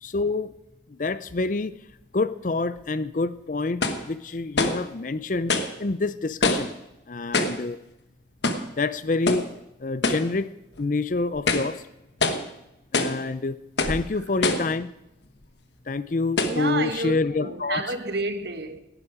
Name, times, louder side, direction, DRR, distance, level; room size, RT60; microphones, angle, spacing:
voice 1, 0.0-0.5 0.9-1.8 2.1-5.5 5.8-6.7 7.1-7.8 8.8-9.4 9.8-10.5 10.8-11.8 12.9-13.6 13.9-14.9 15.9-17.9, left 3 dB, 45° left, 0.5 m, -27 dB
sound 1, 2.8-2.9 3.8-4.1 4.5-4.9 5.5-5.8 6.4-6.8 7.3-7.6 8.4-8.7 9.3-9.5 10.0-10.3 10.7-10.8 11.3-11.8 12.2-12.5 12.9-13.2 13.8-14.1 14.4-14.7 15.4-15.5 16.4-16.6, left 3 dB, 70° left, 1.2 m, -25 dB
voice 2, 16.4-18.8, right 2 dB, 65° right, 1.2 m, -30 dB
17.5 x 9.9 x 4.9 m
head